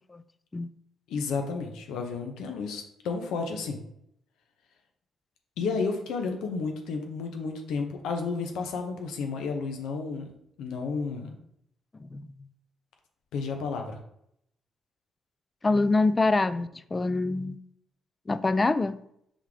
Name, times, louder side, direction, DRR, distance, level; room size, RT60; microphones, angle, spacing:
voice 1, 1.1-3.8 5.6-10.3 10.6-11.3 13.3-14.0, left 4 dB, 85° left, 4 dB, 0.9 m, -32 dB
voice 2, 15.6-17.6 18.3-19.0, left 3 dB, 25° left, 15 dB, 0.4 m, -25 dB
5.4 x 3.6 x 4.9 m, 0.73 s
cardioid pair, 90°, 0 cm